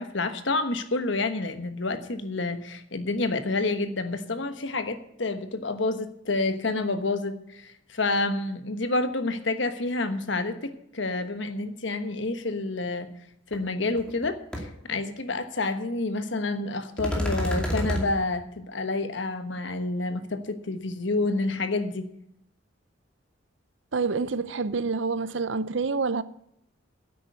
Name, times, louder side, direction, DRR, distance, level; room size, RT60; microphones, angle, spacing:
voice 1, 0.0-13.1 13.5-22.0, left 2 dB, 65° left, 1.3 m, -29 dB
sound 1, 13.5-13.6 14.0-14.3 14.5-14.6 17.0-18.1, equal, 5° left, 2.4 m, -28 dB
voice 2, 23.9-26.2, right 4 dB, 65° right, 0.6 m, -27 dB
10.0 x 8.6 x 8.0 m
head